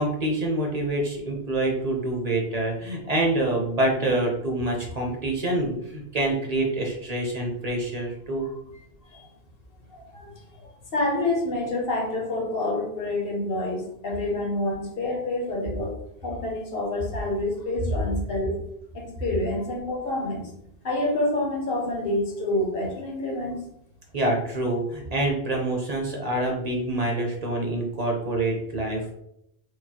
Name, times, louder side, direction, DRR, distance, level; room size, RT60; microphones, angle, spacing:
voice 1, 0.0-8.5 24.1-29.1, right 1 dB, 45° right, 0 dB, 0.7 m, -26 dB
voice 2, 9.9-10.3 10.9-15.9 16.2-18.5 18.9-20.5 20.8-23.6, left 2 dB, 65° left, 1 dB, 1.0 m, -27 dB
4.7 x 2.0 x 2.8 m, 0.77 s
omnidirectional pair, 1.1 m